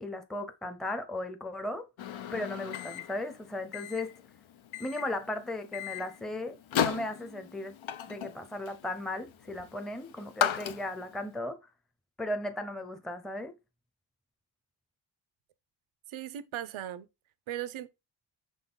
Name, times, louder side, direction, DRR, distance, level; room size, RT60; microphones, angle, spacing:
voice 1, 0.0-1.9 2.3-4.1 4.8-7.8 8.1-11.6 12.2-13.5, left 1 dB, ahead, 0.6 m, -36 dB
Microwave oven, 2.0-11.2, left 9 dB, 80° left, 0.8 m, -36 dB
voice 2, 16.1-17.1 17.5-17.9, right 12 dB, 90° right, 0.7 m, -37 dB
6.4 x 3.8 x 3.9 m
wide cardioid pair, 135°, 47 cm